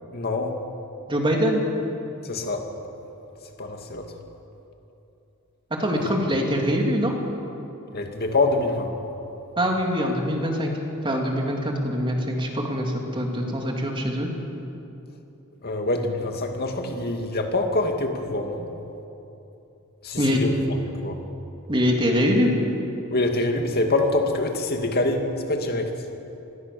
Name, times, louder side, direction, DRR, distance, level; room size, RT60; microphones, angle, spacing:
voice 1, 0.1-0.6 2.2-2.6 3.6-4.1 7.9-8.9 15.6-18.7 20.0-21.2 23.1-25.9, left 2 dB, 45° left, 4 dB, 2.5 m, -25 dB
voice 2, 1.1-1.6 5.8-7.1 9.6-10.7 11.0-14.3 20.2-20.4 21.7-22.5, equal, 25° right, 1 dB, 3.1 m, -23 dB
26.5 x 20.5 x 7.1 m, 2.9 s
head